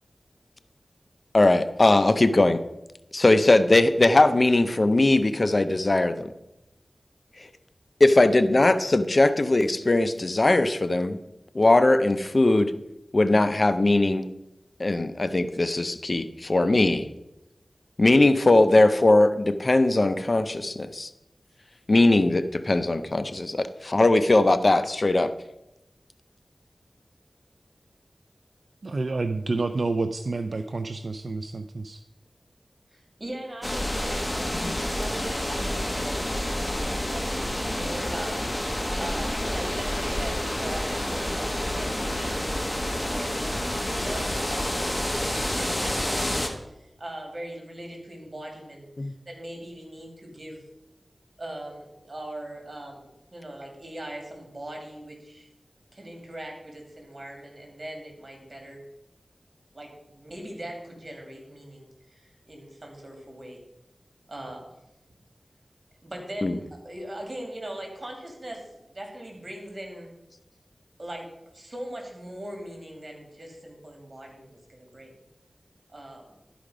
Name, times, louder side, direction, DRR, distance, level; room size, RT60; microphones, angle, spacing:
voice 1, 1.3-2.6 3.1-6.3 7.4-7.5 8.0-11.2 11.5-12.7 13.1-14.3 14.8-17.0 18.0-21.1 21.9-25.3 34.6-34.7 49.0-49.1 66.4-66.5, left 2 dB, 50° left, 11 dB, 0.6 m, -20 dB
voice 2, 28.8-32.0, right 3 dB, 70° right, 9 dB, 0.4 m, -29 dB
voice 3, 32.9-36.2 36.5-50.6 51.4-55.5 55.9-58.8 59.7-63.6 64.3-64.7 66.0-70.1 71.0-75.2 75.9-76.3, right 1 dB, 45° right, 1 dB, 2.6 m, -40 dB
sound 1, 33.6-46.5, left 1 dB, 15° left, 1.4 m, -28 dB
11.5 x 5.1 x 5.0 m, 0.91 s
wide cardioid pair, 50°, 0 cm